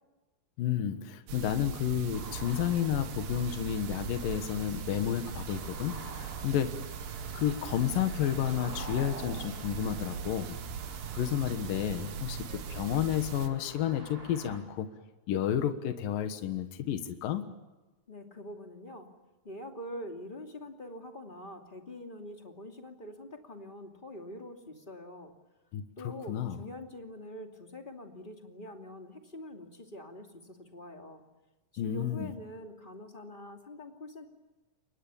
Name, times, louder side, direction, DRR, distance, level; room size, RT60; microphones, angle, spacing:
voice 1, 0.6-6.8 7.3-10.6 11.1-14.9 15.3-17.4 25.7-26.6 31.8-32.3, left 10 dB, 75° left, 8 dB, 3.0 m, -31 dB
sound 1, 1.3-13.5, right 8 dB, 80° right, 3.2 m, -40 dB
sound 2, 2.1-14.6, right 1 dB, 25° right, 5.2 m, -46 dB
voice 2, 18.1-19.1 19.4-25.3 26.0-31.2 31.7-34.3, left 1 dB, 15° left, 3 dB, 2.2 m, -45 dB
29.0 x 23.5 x 7.1 m, 1.1 s
omnidirectional pair, 4.1 m